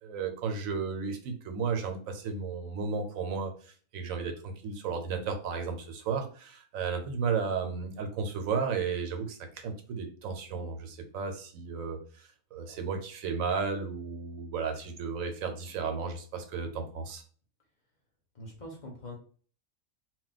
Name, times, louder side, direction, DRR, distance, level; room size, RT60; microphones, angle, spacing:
voice 1, 0.0-17.2, right 5 dB, 90° right, 5 dB, 1.1 m, -34 dB
voice 2, 18.3-19.2, left 1 dB, 40° left, -1 dB, 0.8 m, -43 dB
2.3 x 2.2 x 3.9 m, 0.42 s
omnidirectional pair, 1.4 m